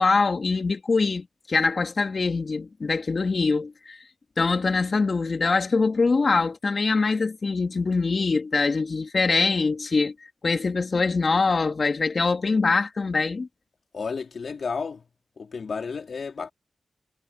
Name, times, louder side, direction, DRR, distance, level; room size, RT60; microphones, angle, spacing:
voice 1, 0.0-4.0 4.4-10.1 10.4-13.5, left 4 dB, 50° left, 2.9 m, -23 dB
voice 2, 13.9-15.0 15.4-16.5, left 5 dB, 65° left, 2.9 m, -32 dB
cardioid pair, 80°, 0 cm